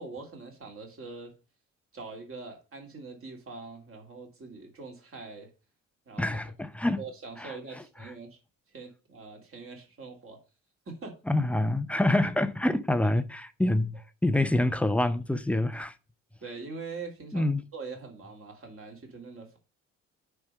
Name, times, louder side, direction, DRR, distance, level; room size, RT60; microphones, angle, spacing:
voice 1, 0.0-1.4 1.9-5.5 6.1-6.2 7.0-8.4 8.7-10.4 10.9-11.2 16.4-19.6, right 4 dB, 35° right, 2.9 m, -43 dB
voice 2, 6.2-7.0 7.4-7.6 11.3-13.9 14.2-15.9 17.3-17.6, left 1 dB, 5° left, 0.7 m, -26 dB
9.5 x 3.5 x 5.4 m
figure-of-eight pair, 50°, 38 cm